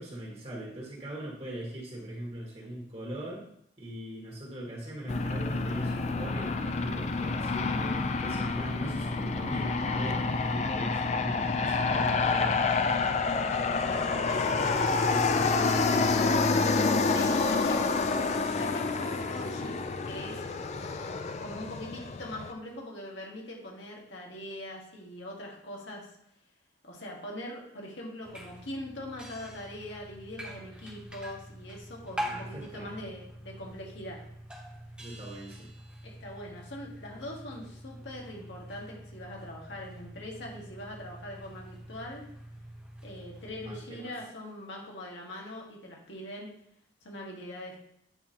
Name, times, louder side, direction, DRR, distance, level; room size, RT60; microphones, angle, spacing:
voice 1, 0.0-3.5 3.8-12.7 14.0-14.4 15.1-15.9 32.2-33.0 35.0-35.7 43.6-44.1, right 1 dB, 35° right, -4 dB, 1.8 m, -41 dB
Aircraft, 5.1-22.5, left 4 dB, 35° left, 0.4 m, -28 dB
voice 2, 13.8-14.2 16.5-20.4 21.4-26.1 26.8-34.3 36.0-42.2 43.0-46.5 47.0-47.8, left 1 dB, 85° left, -2 dB, 1.7 m, -42 dB
sound 1, 28.2-43.8, equal, 5° right, 0.9 m, -44 dB
9.0 x 4.4 x 2.9 m, 0.72 s
head